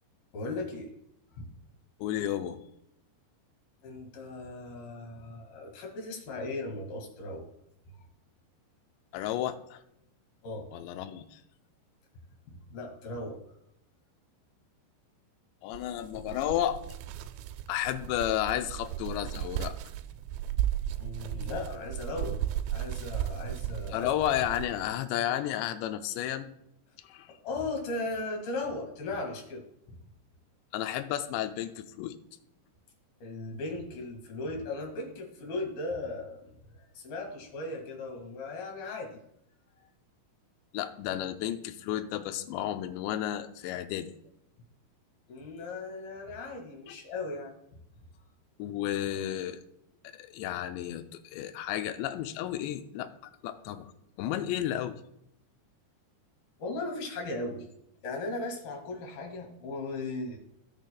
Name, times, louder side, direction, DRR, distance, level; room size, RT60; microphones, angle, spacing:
voice 1, 0.3-0.9 1.4-1.5 3.8-7.5 10.4-10.7 12.5-13.4 21.0-22.4 22.7-24.1 27.4-30.0 33.2-36.5 36.9-39.1 45.3-47.5 56.6-57.7 58.0-60.4, left 2 dB, 60° left, 2 dB, 3.4 m, -37 dB
voice 2, 2.0-2.6 9.1-9.8 10.7-11.4 15.6-16.8 17.7-19.7 23.9-26.5 27.0-27.3 30.7-32.2 40.7-44.1 46.9-47.0 48.6-49.6 50.1-53.1 53.4-53.9 54.2-55.0, left 12 dB, 85° left, 8 dB, 2.8 m, -32 dB
sound 1, 15.7-25.0, right 12 dB, 85° right, 2.8 m, -35 dB
18.0 x 6.6 x 2.2 m, 0.78 s
omnidirectional pair, 5.2 m